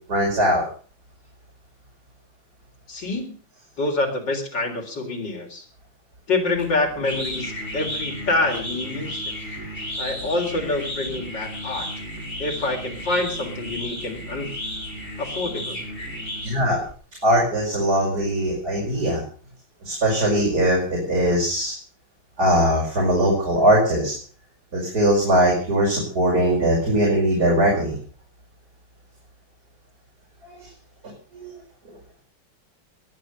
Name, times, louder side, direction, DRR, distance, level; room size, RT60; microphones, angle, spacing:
voice 1, 0.1-0.6 16.4-16.8 17.2-19.2 19.8-21.7 22.4-24.1 24.7-28.0 30.4-30.7 31.3-31.5, right 1 dB, 50° right, -3 dB, 5.7 m, -20 dB
voice 2, 2.9-3.3 3.8-5.6 6.3-9.2 10.0-11.9 12.4-14.5 15.2-15.8, left 2 dB, 65° left, 2 dB, 4.5 m, -26 dB
sound 1, 6.5-16.9, equal, 40° left, 6.4 m, -33 dB
21.0 x 9.5 x 6.7 m, 0.43 s
omnidirectional pair, 2.1 m